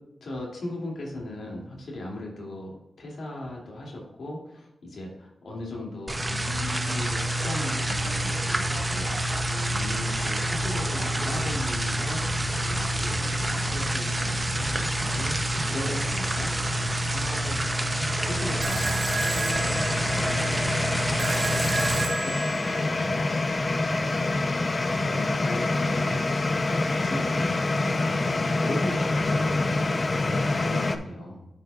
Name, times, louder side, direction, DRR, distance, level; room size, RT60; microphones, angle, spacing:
voice 1, 0.2-9.3 9.6-12.2 12.6-17.5 18.1-21.1 21.4-23.4 23.7-26.2 26.6-27.6 27.9-31.5, left 1 dB, 80° left, -2 dB, 2.6 m, -38 dB
sound 1, 6.1-22.1, right 1 dB, 15° right, 0.7 m, -27 dB
sound 2, 16.3-31.0, left 2 dB, 35° left, 0.6 m, -27 dB
sound 3, 18.6-23.6, right 3 dB, 80° right, 1.4 m, -33 dB
11.5 x 5.4 x 2.4 m, 0.92 s
wide cardioid pair, 130°, 0 cm